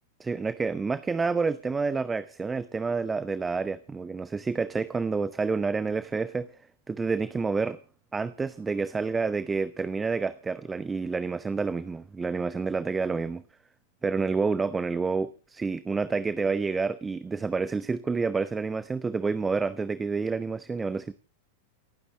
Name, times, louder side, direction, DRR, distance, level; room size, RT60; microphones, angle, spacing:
voice 1, 0.2-6.5 6.9-7.8 8.1-13.4 14.0-21.1, right 4 dB, 15° right, 14 dB, 0.8 m, -29 dB
28.5 x 9.8 x 3.2 m, 0.39 s
figure-of-eight pair, 90°, 0 cm